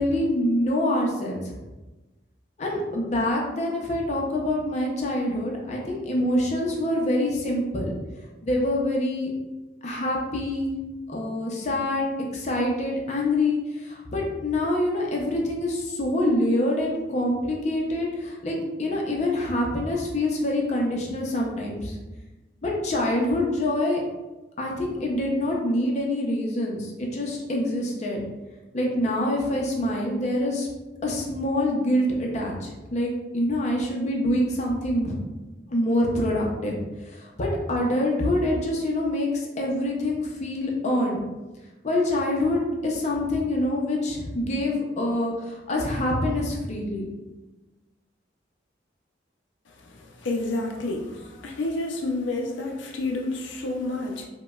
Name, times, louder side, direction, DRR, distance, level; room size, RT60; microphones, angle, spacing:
voice 1, 0.0-1.5 2.6-7.9 8.4-9.3 9.8-10.7 11.1-12.1 12.3-22.0 22.6-24.0 24.6-28.2 28.7-30.7 31.0-35.2 35.7-36.8 37.1-41.2 41.8-47.1, left 1 dB, 40° left, -1 dB, 0.5 m, -25 dB
voice 2, 50.2-54.3, left 2 dB, 90° left, 2 dB, 0.5 m, -29 dB
4.8 x 2.1 x 2.3 m, 1.1 s
head